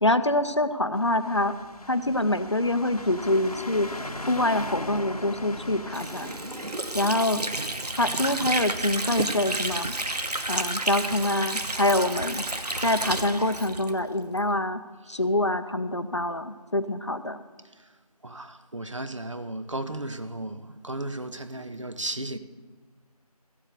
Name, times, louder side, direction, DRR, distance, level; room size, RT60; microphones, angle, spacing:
voice 1, 0.0-1.5 1.9-3.9 4.3-6.3 6.9-7.4 8.0-9.9 10.5-12.4 12.8-14.8 15.1-17.4, left 1 dB, 45° left, 0.6 m, -25 dB
sound 1, 0.9-7.2, left 1 dB, 70° left, 1.1 m, -39 dB
Water / Sink (filling or washing), 5.9-14.5, right 2 dB, 90° right, 1.1 m, -31 dB
voice 2, 18.2-22.4, right 1 dB, 50° right, 0.8 m, -35 dB
15.0 x 7.5 x 6.5 m
figure-of-eight pair, 170°, 20 cm